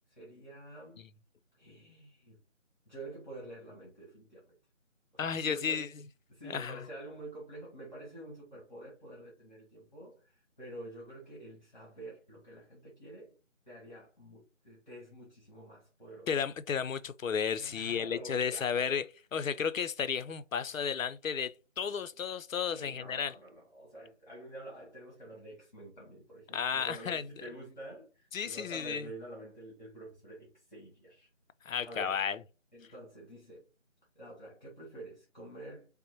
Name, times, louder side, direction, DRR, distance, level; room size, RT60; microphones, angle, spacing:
voice 1, 0.1-1.0 1.6-2.4 2.9-4.5 5.1-5.9 6.3-13.3 13.7-16.3 17.6-18.9 22.7-31.3 31.8-32.4 32.7-33.6 34.1-35.9, right 1 dB, 35° left, 1.3 m, -48 dB
voice 2, 5.2-5.9 6.5-6.8 16.3-19.1 19.3-23.3 26.5-27.2 28.3-29.1 31.7-32.4, left 7 dB, 85° left, 0.5 m, -33 dB
5.4 x 2.1 x 2.9 m
figure-of-eight pair, 180°, 38 cm